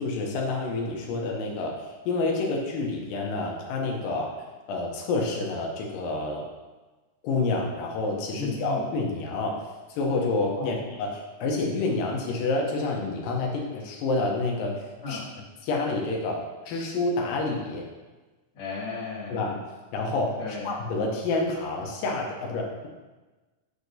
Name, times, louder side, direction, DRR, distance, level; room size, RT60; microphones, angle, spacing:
voice 1, 0.0-4.3 4.7-6.4 7.2-9.6 9.9-15.2 15.6-17.8 19.3-19.6 19.9-22.9, left 3 dB, 90° left, 0 dB, 2.5 m, -28 dB
voice 2, 8.4-8.8 10.6-10.8 15.0-15.2 18.5-19.4 20.4-20.7, left 4 dB, 45° left, -7 dB, 2.5 m, -34 dB
7.3 x 6.4 x 2.7 m, 1.2 s
omnidirectional pair, 3.8 m